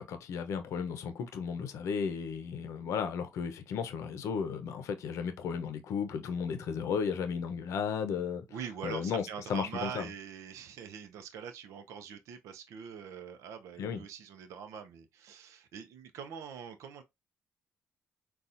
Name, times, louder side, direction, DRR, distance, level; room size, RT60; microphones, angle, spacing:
voice 1, 0.0-8.4 8.8-9.2 9.5-10.1 13.8-14.0, left 6 dB, 70° left, 0.6 m, -34 dB
voice 2, 8.5-17.0, right 7 dB, 75° right, 0.6 m, -43 dB
4.0 x 2.4 x 2.5 m
supercardioid pair, 65°, 5 cm